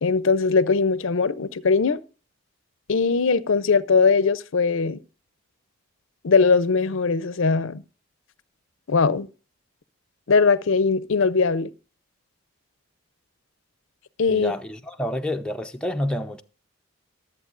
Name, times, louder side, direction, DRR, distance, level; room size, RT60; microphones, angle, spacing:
voice 1, 0.0-2.0 2.9-5.0 6.2-7.8 8.9-9.3 10.3-11.7 14.2-14.5, left 4 dB, 65° left, 0.5 m, -20 dB
voice 2, 14.3-16.4, left 1 dB, 5° left, 0.5 m, -28 dB
22.5 x 7.9 x 2.5 m
head